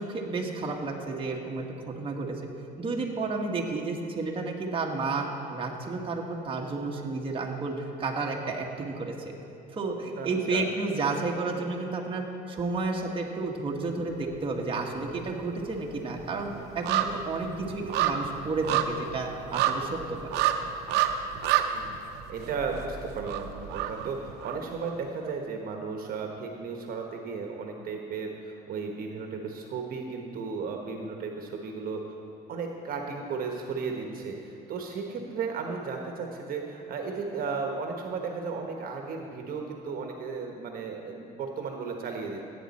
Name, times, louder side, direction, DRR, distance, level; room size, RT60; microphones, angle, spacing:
voice 1, 0.0-2.4 2.8-9.3 9.7-20.2, right 3 dB, 30° right, 0 dB, 1.4 m, -31 dB
voice 2, 10.2-10.6 21.5-32.2 32.5-42.4, right 5 dB, 60° right, 2 dB, 1.2 m, -35 dB
sound 1, 13.9-14.7 15.0-24.9 25.3-25.4, right 10 dB, 85° right, 0.7 m, -30 dB
15.0 x 8.9 x 4.2 m, 3.0 s
cardioid pair, 110°, 17 cm